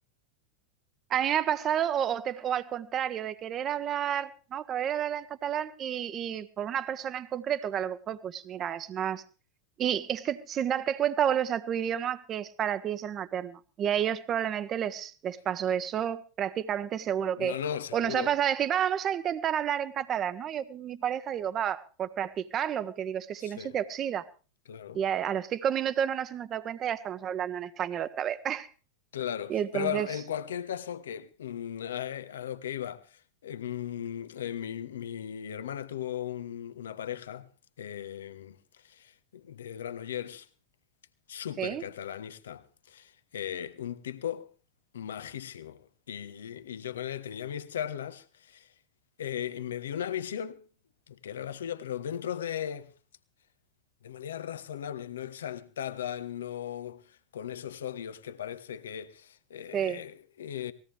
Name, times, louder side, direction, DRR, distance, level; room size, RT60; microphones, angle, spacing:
voice 1, 1.1-9.2 9.8-17.5 17.9-24.3 24.9-28.7 29.5-30.1 41.6-41.8 59.7-60.0, right 9 dB, 30° right, 1.2 m, -30 dB
voice 2, 17.4-18.3 23.4-23.8 24.7-25.0 29.1-37.5 37.8-40.5 41.3-44.5 44.9-45.8 46.1-48.7 49.2-50.6 51.1-52.9 54.0-60.7, left 9 dB, 65° left, 1.2 m, -37 dB
19.5 x 16.5 x 3.5 m
figure-of-eight pair, 90°, 0 cm